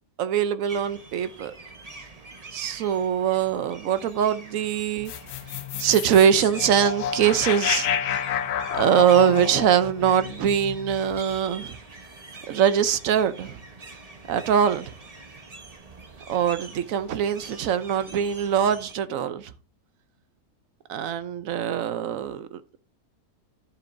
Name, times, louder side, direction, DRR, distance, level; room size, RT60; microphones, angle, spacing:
voice 1, 0.2-1.5 2.5-5.1 5.8-8.2 8.8-11.8 12.5-13.6 14.3-14.9 16.3-19.5 20.9-22.8, right 8 dB, 65° right, 1.0 m, -23 dB
sound 1, 0.7-18.9, right 3 dB, 25° right, 1.0 m, -44 dB
sound 2, 5.1-11.4, left 9 dB, 75° left, 1.2 m, -30 dB
11.5 x 7.4 x 2.6 m
omnidirectional pair, 1.7 m